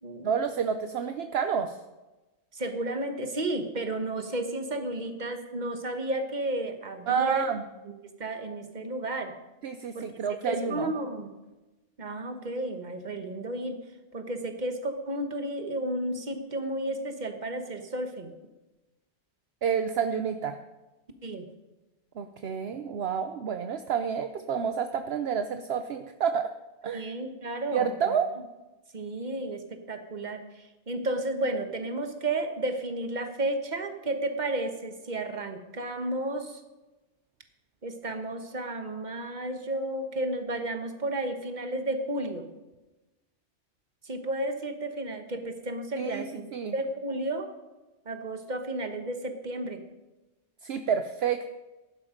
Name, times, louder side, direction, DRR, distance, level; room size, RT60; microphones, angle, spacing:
voice 1, 0.2-1.8 7.1-7.6 9.6-10.9 19.6-20.6 22.2-26.5 26.8-27.1 27.7-28.3 46.0-46.7 50.6-51.6, right 7 dB, 65° right, 8 dB, 1.0 m, -29 dB
voice 2, 2.5-7.5 8.2-9.4 9.9-10.0 10.5-11.3 12.0-13.8 14.1-18.3 21.2-21.5 26.9-28.2 28.9-36.6 37.8-42.5 44.0-46.4 46.7-47.5 48.0-49.8, right 1 dB, 40° right, 6 dB, 1.5 m, -32 dB
15.5 x 11.5 x 5.2 m, 1.1 s
omnidirectional pair, 1.2 m